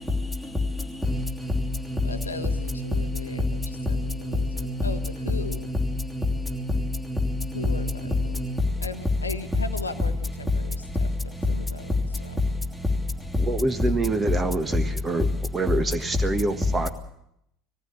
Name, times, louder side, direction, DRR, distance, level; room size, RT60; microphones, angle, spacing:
voice 1, 1.1-2.0 2.4-2.5 2.7-2.8 3.3-3.4 3.8-4.3 4.6-5.3 5.7-5.8 6.1-6.2 6.5-6.6 7.1-7.8 8.4-8.5, left 1 dB, ahead, 2.9 m, -28 dB
voice 2, 2.0-5.7 7.5-8.4 8.8-11.1 11.5-12.0 12.2-12.4, left 3 dB, 85° left, 1.0 m, -37 dB
voice 3, 13.4-15.3 15.5-16.9, right 3 dB, 20° right, 1.4 m, -26 dB
20.0 x 15.0 x 8.8 m
figure-of-eight pair, 70°, 0 cm